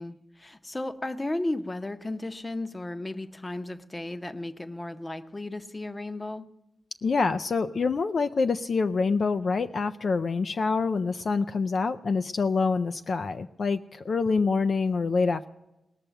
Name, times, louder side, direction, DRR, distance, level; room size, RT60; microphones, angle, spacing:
voice 1, 0.0-6.5, left 2 dB, 20° left, 10 dB, 0.8 m, -34 dB
voice 2, 7.0-15.5, left 4 dB, 50° left, 9 dB, 0.4 m, -26 dB
19.0 x 6.8 x 9.1 m, 0.97 s
wide cardioid pair, 125°, 0 cm